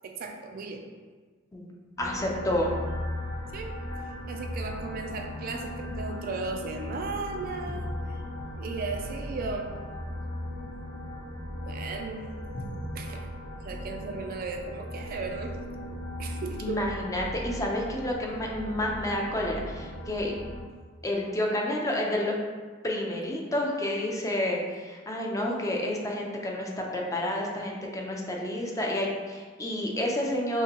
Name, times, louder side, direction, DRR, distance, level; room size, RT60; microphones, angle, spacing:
voice 1, 0.0-0.9 3.5-3.8 4.3-8.2 8.6-9.7 11.6-12.3 12.9-13.3 13.6-15.6 16.2-16.8, right 4 dB, 50° right, 3 dB, 0.3 m, -36 dB
sound 1, 2.0-20.6, left 1 dB, 65° left, 0.9 m, -37 dB
voice 2, 2.0-2.7 16.6-20.4 21.0-22.4 22.8-30.6, left 1 dB, 15° left, -1 dB, 0.5 m, -30 dB
5.6 x 2.2 x 2.9 m, 1.5 s
head